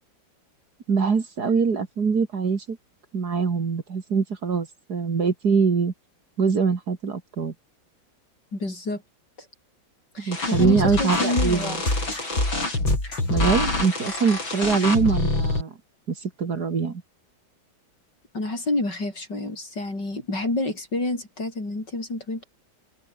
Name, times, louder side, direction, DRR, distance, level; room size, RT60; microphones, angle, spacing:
voice 1, 0.9-2.8 3.1-5.9 6.4-7.5 10.2-11.8 13.3-15.7 16.2-17.0, right 5 dB, 55° right, 2.6 m, -23 dB
voice 2, 8.5-9.0 10.1-11.8 18.3-22.4, left 2 dB, 60° left, 7.9 m, -28 dB
sound 1, 10.3-15.6, left 2 dB, 85° left, 7.8 m, -26 dB
sound 2, 11.1-13.6, left 1 dB, 35° left, 7.3 m, -26 dB
omnidirectional pair, 2.1 m